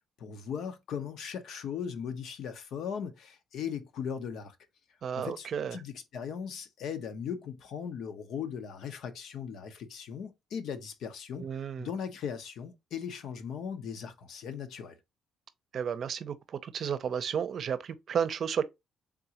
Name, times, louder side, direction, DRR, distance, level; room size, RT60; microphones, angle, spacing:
voice 1, 0.2-4.6 5.2-11.5 11.8-15.0, left 7 dB, 75° left, 0.7 m, -38 dB
voice 2, 5.0-5.8 11.4-11.9 15.7-16.3 16.6-18.6, right 7 dB, 60° right, 0.6 m, -32 dB
3.7 x 3.6 x 2.8 m
cardioid pair, 90°, 0 cm